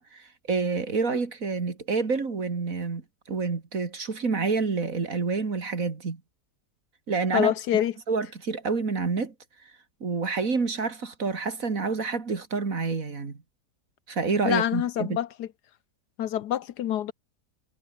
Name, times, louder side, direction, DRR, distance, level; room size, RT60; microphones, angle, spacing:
voice 1, 0.0-3.0 3.3-6.2 7.1-7.5 8.1-9.3 10.0-13.4 14.1-15.2, right 4 dB, 50° right, 2.8 m, -28 dB
voice 2, 7.3-7.9 14.4-15.5 16.2-17.1, left 11 dB, 75° left, 1.4 m, -26 dB
omnidirectional pair, 1.8 m